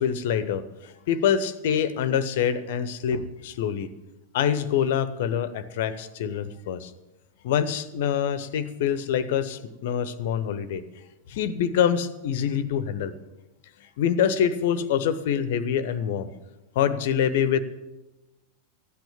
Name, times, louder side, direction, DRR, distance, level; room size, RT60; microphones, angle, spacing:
voice 1, 0.0-3.9 4.3-6.9 7.4-10.8 11.3-13.1 14.0-16.3 16.7-17.6, left 8 dB, 55° left, 15 dB, 0.8 m, -25 dB
14.0 x 9.1 x 7.2 m, 1.1 s
figure-of-eight pair, 90°, 0 cm